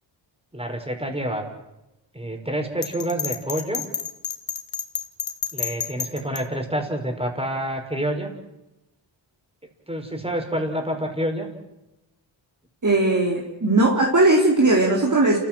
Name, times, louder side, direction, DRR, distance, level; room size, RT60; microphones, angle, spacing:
voice 1, 0.5-1.4 2.1-3.8 5.5-8.3 9.9-11.5, right 1 dB, 10° right, 3 dB, 5.6 m, -28 dB
Bell, 2.8-6.4, left 7 dB, 75° left, 2.0 m, -30 dB
voice 2, 12.8-15.4, right 2 dB, 40° right, -1 dB, 4.0 m, -18 dB
29.0 x 15.5 x 7.8 m, 0.96 s
cardioid pair, 60°, 46 cm